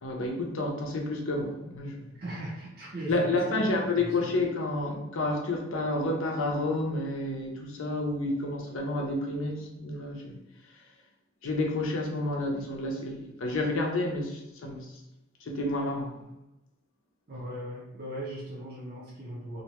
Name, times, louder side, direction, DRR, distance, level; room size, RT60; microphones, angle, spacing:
voice 1, 0.0-2.0 3.1-10.4 11.4-15.0 15.4-16.1, left 2 dB, 80° left, 1 dB, 0.5 m, -30 dB
voice 2, 2.2-4.4 17.3-19.6, right 1 dB, 50° right, -5 dB, 0.6 m, -39 dB
2.5 x 2.2 x 2.8 m, 0.92 s
head